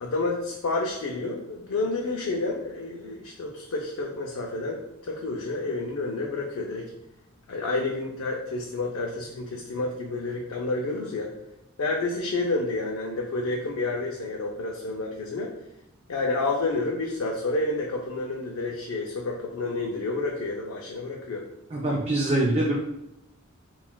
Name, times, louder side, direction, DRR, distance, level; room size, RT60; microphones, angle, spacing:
voice 1, 0.0-6.9 7.5-11.3 11.8-15.5 16.1-21.4, left 2 dB, 85° left, -1 dB, 0.5 m, -29 dB
voice 2, 21.7-22.8, right 1 dB, 30° right, -4 dB, 0.4 m, -24 dB
5.6 x 2.4 x 2.2 m, 0.83 s
head